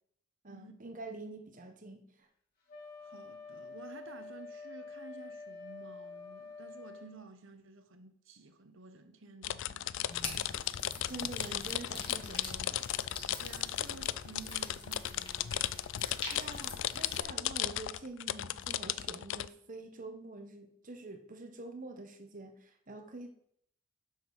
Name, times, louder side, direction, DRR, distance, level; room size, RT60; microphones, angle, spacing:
voice 1, 0.4-2.3 11.1-12.8 16.3-23.3, right 2 dB, 40° right, 1.1 m, -46 dB
Wind instrument woodwind instrument, 2.7-7.1, left 4 dB, 45° left, 3.0 m, -47 dB
voice 2, 3.0-10.1 13.4-15.8, right 3 dB, 65° right, 1.1 m, -52 dB
sound 1, 9.4-19.5, left 12 dB, 60° left, 0.4 m, -36 dB
sound 2, 10.1-17.2, left 2 dB, 25° left, 2.1 m, -46 dB
12.0 x 6.3 x 4.8 m
head